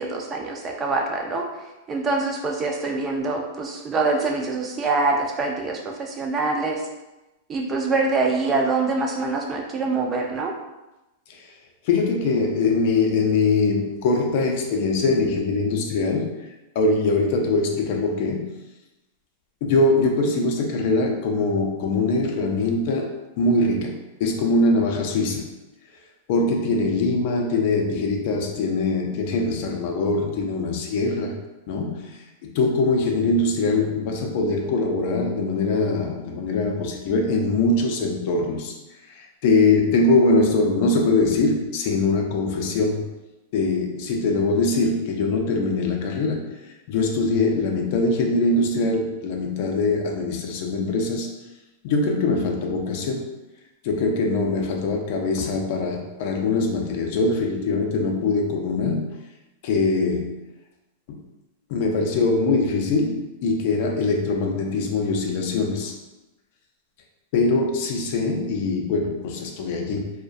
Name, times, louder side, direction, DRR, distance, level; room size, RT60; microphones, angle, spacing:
voice 1, 0.0-1.4 1.9-6.9 7.5-10.5, right 3 dB, 25° right, 1 dB, 0.3 m, -24 dB
voice 2, 11.8-16.3 16.7-18.6 19.6-23.1 23.4-25.5 26.3-31.4 31.7-38.7 39.1-43.1 43.5-46.6 46.9-51.3 51.8-53.3 53.8-59.2 59.6-60.4 61.1-61.2 61.7-65.9 67.3-70.1, left 3 dB, 55° left, 2 dB, 0.4 m, -22 dB
2.3 x 2.1 x 2.5 m, 1.0 s
hypercardioid pair, 130°, 0 cm